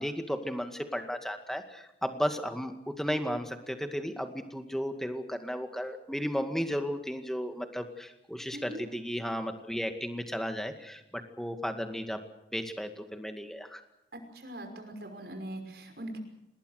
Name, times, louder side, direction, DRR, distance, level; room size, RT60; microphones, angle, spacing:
voice 1, 0.0-11.0 11.4-12.2 12.5-13.8, equal, ahead, 6 dB, 2.1 m, -34 dB
voice 2, 8.5-8.8 14.3-16.2, right 1 dB, 65° right, 5 dB, 5.7 m, -41 dB
28.0 x 20.0 x 6.6 m, 0.83 s
head